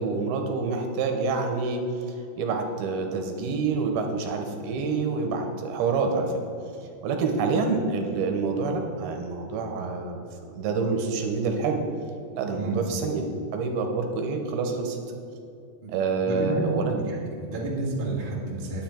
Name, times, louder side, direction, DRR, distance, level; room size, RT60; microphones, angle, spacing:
voice 1, 0.0-6.4 7.0-10.2 10.5-11.8 12.3-13.3 13.5-15.0 15.9-16.9, right 4 dB, 75° right, 3 dB, 2.8 m, -27 dB
voice 2, 16.2-16.6 16.9-18.8, right 2 dB, 50° right, -5 dB, 0.6 m, -30 dB
9.7 x 9.5 x 4.4 m, 2.5 s
omnidirectional pair, 4.8 m